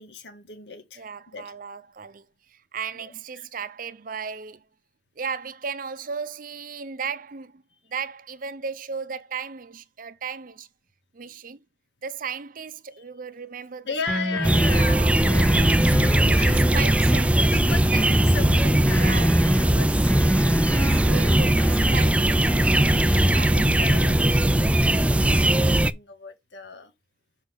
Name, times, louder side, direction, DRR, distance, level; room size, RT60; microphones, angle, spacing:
voice 1, 0.0-1.1 1.3-1.4 3.0-3.1 3.4-3.5 13.9-16.7 17.5-20.2 21.0-21.4 21.8-26.9, left 4 dB, 80° left, 1.8 m, -37 dB
voice 2, 1.0-4.6 5.2-7.6 7.9-10.7 11.1-11.6 12.0-15.3 15.8-15.9 16.2-17.6 17.9-18.1 19.0-19.5 20.1-20.3 20.6-22.1 23.2-23.6, right 6 dB, 50° right, 0.7 m, -35 dB
sound 1, 14.1-14.8 15.3-17.3 17.7-19.6 20.1-22.1 22.5-23.7, equal, 10° left, 0.9 m, -28 dB
sound 2, 14.4-25.9, right 1 dB, 5° right, 0.3 m, -20 dB
7.1 x 5.3 x 3.6 m
head